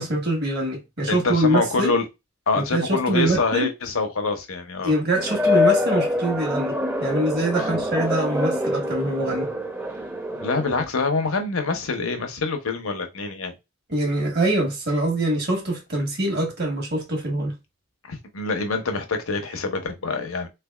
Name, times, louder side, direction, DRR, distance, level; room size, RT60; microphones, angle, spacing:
voice 1, 0.0-1.9 2.5-3.7 4.8-9.5 13.9-17.5, right 1 dB, 50° right, 1.4 m, -24 dB
voice 2, 1.1-2.1 2.5-4.9 7.6-7.7 10.3-13.5 18.1-20.5, left 3 dB, 80° left, 0.9 m, -25 dB
sound 1, 5.2-10.8, left 2 dB, 10° right, 0.6 m, -25 dB
3.7 x 3.3 x 2.3 m
head